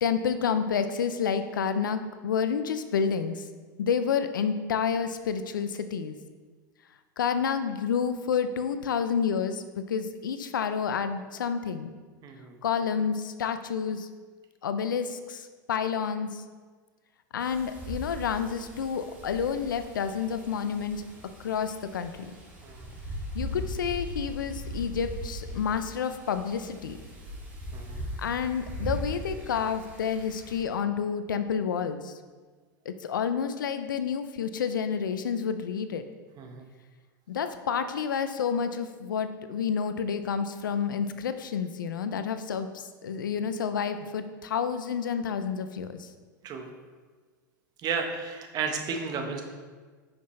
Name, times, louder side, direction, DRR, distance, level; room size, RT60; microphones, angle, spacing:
voice 1, 0.0-3.4 3.8-6.1 7.2-11.9 12.6-14.1 14.6-16.4 17.3-21.0 21.4-22.3 23.3-27.0 28.2-32.1 32.9-36.1 37.3-46.1, left 7 dB, 85° left, 10 dB, 0.6 m, -29 dB
voice 2, 12.2-12.6 22.6-22.9 27.7-28.0 36.4-36.6 46.4-46.7 47.8-49.4, right 5 dB, 40° right, 4 dB, 1.3 m, -33 dB
Wind, 17.4-30.6, equal, 15° right, 2.4 m, -39 dB
9.4 x 5.8 x 3.3 m, 1.4 s
hypercardioid pair, 100°, 11 cm